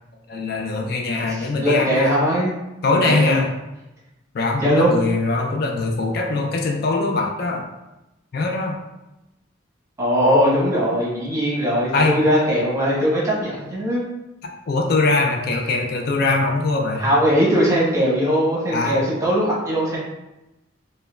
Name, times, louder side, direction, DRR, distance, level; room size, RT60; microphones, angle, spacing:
voice 1, 0.3-2.2 2.8-3.5 4.3-7.6 8.3-8.8 11.9-12.2 14.7-17.1 18.7-19.0, left 3 dB, 50° left, 1 dB, 0.4 m, -22 dB
voice 2, 1.2-2.5 2.9-3.4 4.6-4.9 10.0-14.0 17.0-20.0, equal, 15° right, -6 dB, 0.9 m, -20 dB
5.1 x 2.1 x 2.3 m, 0.98 s
head